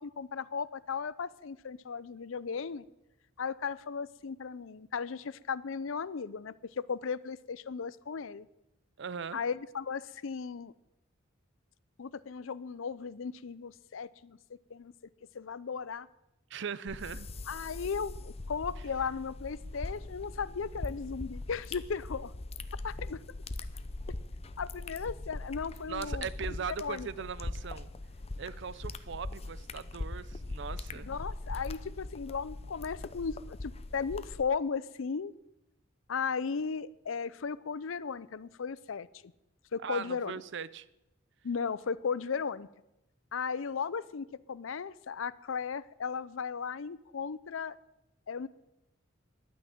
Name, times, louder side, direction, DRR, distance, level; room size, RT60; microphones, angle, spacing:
voice 1, 0.0-2.8 3.4-8.5 9.3-10.7 12.0-14.9 15.3-16.1 17.5-22.3 22.8-23.2 24.6-26.3 26.8-27.1 31.1-35.3 36.1-39.1 39.7-40.4 41.4-42.7 43.3-47.8 48.3-48.5, left 5 dB, 70° left, 0.5 m, -36 dB
voice 2, 9.0-9.4 16.5-17.3 25.9-27.9 28.4-31.2 39.8-40.9, right 6 dB, 60° right, 0.6 m, -39 dB
sound 1, 16.9-34.4, left 2 dB, 30° left, 0.6 m, -41 dB
11.5 x 9.5 x 9.2 m
head